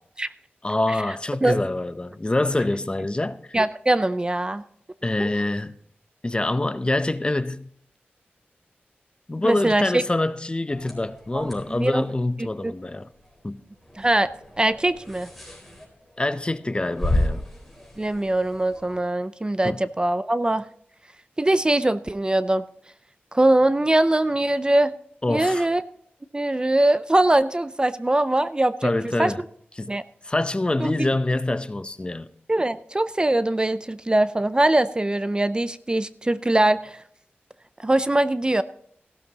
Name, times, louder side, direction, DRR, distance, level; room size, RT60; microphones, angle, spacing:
voice 1, 0.6-3.4 5.0-5.7 6.2-7.7 9.3-13.1 13.4-13.6 16.2-17.4 19.6-19.8 25.2-25.7 28.8-29.4 29.8-29.9 30.2-32.3, left 2 dB, 25° left, 0.6 m, -25 dB
voice 2, 3.5-4.6 5.2-5.3 9.4-10.0 11.3-12.1 12.4-12.7 14.0-14.3 14.6-15.3 18.0-20.6 21.4-22.6 23.3-24.9 25.3-25.8 26.3-29.3 29.9-30.0 30.8-31.1 32.5-37.0 37.8-38.6, right 1 dB, 25° right, 0.4 m, -22 dB
sound 1, 10.7-19.0, left 1 dB, ahead, 4.5 m, -33 dB
15.5 x 12.0 x 2.9 m
wide cardioid pair, 70°, 4 cm